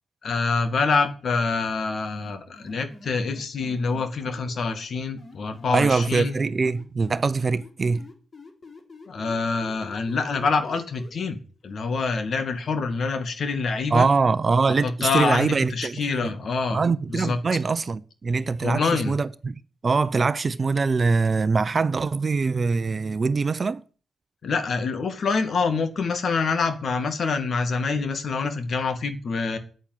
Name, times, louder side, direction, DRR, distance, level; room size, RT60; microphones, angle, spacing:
voice 1, 0.2-6.3 9.1-14.1 14.7-16.8 17.1-17.4 18.6-19.2 24.4-29.6, left 4 dB, 60° left, 2.2 m, -26 dB
sound 1, 2.1-4.4 5.2-7.2 7.5-11.1, left 3 dB, 45° left, 4.3 m, -45 dB
voice 2, 5.7-8.0 13.9-16.3 16.7-19.5 19.8-23.8, right 4 dB, 40° right, 0.8 m, -23 dB
9.0 x 8.9 x 9.5 m
cardioid pair, 65°, 0 cm